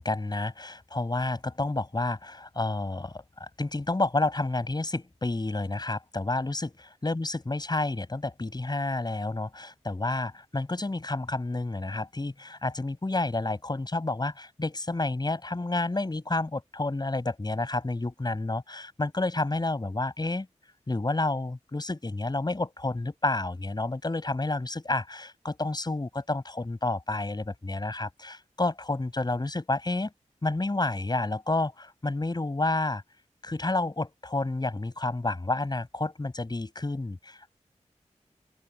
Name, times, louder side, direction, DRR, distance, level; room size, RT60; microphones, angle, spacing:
voice 1, 0.0-20.5 20.9-30.1 30.4-33.0 33.4-37.5, left 2 dB, 35° left, 7.1 m, -30 dB
open air
cardioid pair, 55°, 13 cm